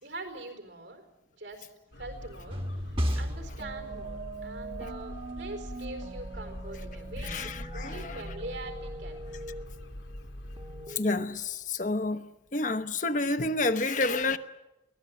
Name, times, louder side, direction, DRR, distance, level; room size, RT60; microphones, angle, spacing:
voice 1, 0.0-1.0 1.4-1.7 2.0-2.6 2.9-7.5 7.7-9.2, right 2 dB, 75° right, 4.5 m, -43 dB
sound 1, 1.9-10.9, left 1 dB, 85° left, 2.6 m, -43 dB
sound 2, 2.5-11.3, right 1 dB, 30° right, 1.5 m, -38 dB
voice 2, 7.2-8.2 10.9-14.4, left 2 dB, 40° left, 1.0 m, -29 dB
23.5 x 18.0 x 8.8 m
head